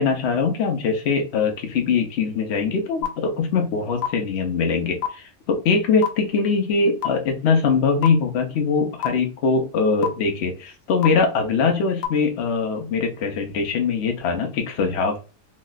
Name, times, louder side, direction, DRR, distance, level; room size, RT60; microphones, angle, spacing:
voice 1, 0.0-15.2, left 5 dB, 50° left, 4 dB, 0.9 m, -22 dB
sound 1, 3.0-3.1 4.0-4.1 5.0-5.1 6.0-6.1 7.0-7.1 8.0-8.1 9.0-9.1 10.0-10.1 11.0-11.1 12.0-12.1, left 13 dB, 70° left, 0.5 m, -23 dB
3.1 x 2.9 x 2.3 m, 0.33 s
omnidirectional pair, 1.7 m